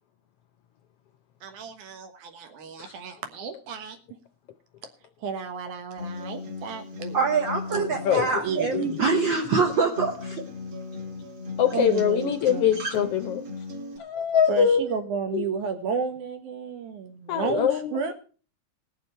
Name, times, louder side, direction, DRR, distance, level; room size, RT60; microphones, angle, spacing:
voice 1, 1.4-4.0 5.2-7.2 8.4-9.0 11.7-12.8 14.5-18.1, right 5 dB, 90° right, 7 dB, 2.8 m, -32 dB
Acoustic guitar, 6.0-14.0, left 2 dB, 45° right, 2.3 m, -37 dB
voice 2, 7.1-10.4, right 5 dB, 70° right, 5 dB, 1.1 m, -24 dB
voice 3, 11.6-13.4 14.0-14.9 15.3-15.4 17.3-17.9, left 8 dB, 75° left, 8 dB, 1.4 m, -23 dB
19.5 x 6.8 x 4.4 m, 0.38 s
omnidirectional pair, 3.4 m